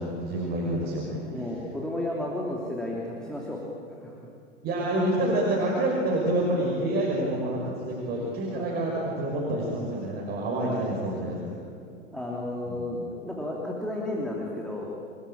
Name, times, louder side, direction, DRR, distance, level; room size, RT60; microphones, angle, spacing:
voice 1, 0.0-1.4 4.6-11.6 12.7-12.9, right 1 dB, 25° right, -3 dB, 5.9 m, -28 dB
voice 2, 1.3-3.6 4.0-4.2 8.5-8.7 10.6-11.0 12.1-15.0, left 1 dB, ahead, -3 dB, 3.1 m, -33 dB
28.5 x 20.5 x 8.9 m, 2.4 s
figure-of-eight pair, 100°, 38 cm